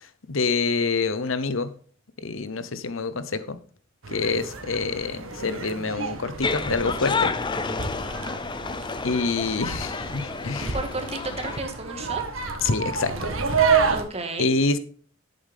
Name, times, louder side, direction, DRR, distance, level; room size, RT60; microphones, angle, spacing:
voice 1, 0.3-1.7 2.2-3.6 4.1-7.3 9.0-10.7 12.6-13.1 14.4-14.8, left 4 dB, 70° left, 0.9 m, -26 dB
sound 1, 4.0-14.0, right 5 dB, 80° right, 1.7 m, -29 dB
sound 2, 6.4-11.6, left 4 dB, 20° left, 0.5 m, -30 dB
voice 2, 10.7-12.2 13.9-14.5, right 2 dB, 30° right, 1.8 m, -33 dB
11.0 x 7.9 x 3.6 m
head